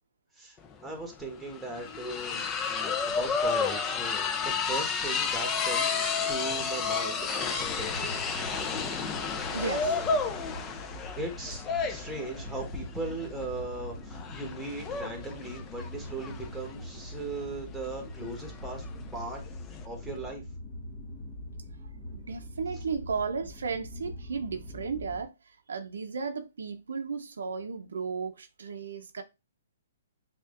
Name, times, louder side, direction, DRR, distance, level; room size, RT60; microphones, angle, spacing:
sound 1, 0.6-0.7 1.0-19.8, left 5 dB, 20° left, 0.5 m, -32 dB
voice 1, 0.8-8.1 11.2-11.6 11.9-18.8 19.1-19.4 19.8-20.4, right 2 dB, 5° right, 1.4 m, -38 dB
sound 2, 7.5-25.2, left 1 dB, 45° left, 1.9 m, -43 dB
voice 2, 9.5-10.0 22.3-25.3 25.7-29.2, right 5 dB, 80° right, 0.7 m, -34 dB
6.4 x 2.5 x 2.5 m
hypercardioid pair, 140°, 0 cm